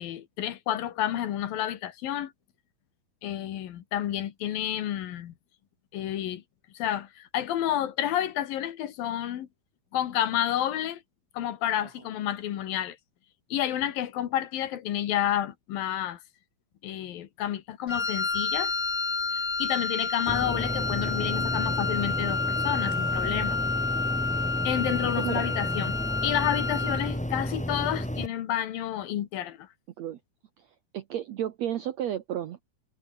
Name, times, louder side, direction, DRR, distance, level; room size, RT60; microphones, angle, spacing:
voice 1, 0.0-2.3 3.2-5.3 5.9-6.4 6.7-9.5 9.9-11.0 11.3-13.0 13.5-16.2 16.8-18.7 19.6-23.6 24.6-25.9 26.2-29.7, left 11 dB, 70° left, 3.2 m, -30 dB
Wind instrument woodwind instrument, 17.9-27.1, left 4 dB, 25° left, 1.9 m, -30 dB
sound 1, 20.3-28.3, equal, ahead, 1.9 m, -32 dB
voice 2, 24.9-25.4 30.0-30.2 30.6-30.7 30.9-32.6, right 11 dB, 70° right, 1.7 m, -32 dB
omnidirectional pair, 4.3 m